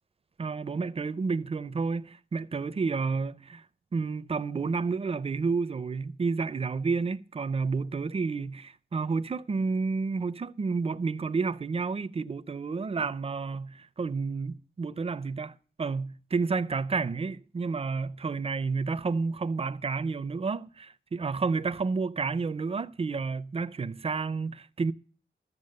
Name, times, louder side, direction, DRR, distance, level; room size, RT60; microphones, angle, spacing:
voice 1, 0.4-3.6 3.9-24.9, right 4 dB, 30° right, 0.5 m, -30 dB
12.5 x 7.1 x 6.4 m
wide cardioid pair, 145°, 20 cm